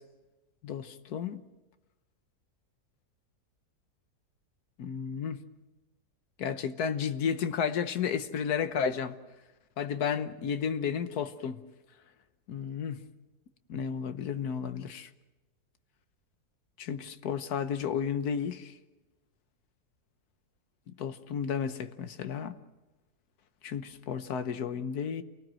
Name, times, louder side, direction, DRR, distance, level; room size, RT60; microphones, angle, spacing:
voice 1, 0.6-1.4 4.8-5.4 6.4-9.2 9.8-11.6 12.5-13.0 13.7-15.1 16.8-18.7 21.0-22.6 23.6-25.2, left 7 dB, 75° left, 1.6 m, -32 dB
28.5 x 18.5 x 7.7 m
omnidirectional pair, 1.7 m